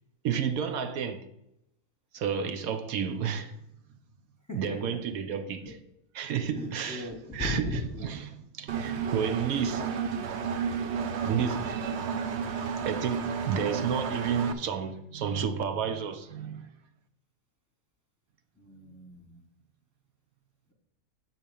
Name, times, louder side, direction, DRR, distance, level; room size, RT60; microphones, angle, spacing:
voice 1, 0.2-1.2 2.1-3.6 4.5-5.8 6.1-9.9 11.2-12.1 12.8-16.7, right 7 dB, 75° right, 1.1 m, -31 dB
voice 2, 4.5-5.0 5.6-5.7 6.5-8.1 18.6-19.4, left 2 dB, 15° left, 0.9 m, -37 dB
Engine, 8.7-14.5, right 6 dB, 60° right, 0.8 m, -32 dB
7.8 x 4.3 x 6.9 m
omnidirectional pair, 1.6 m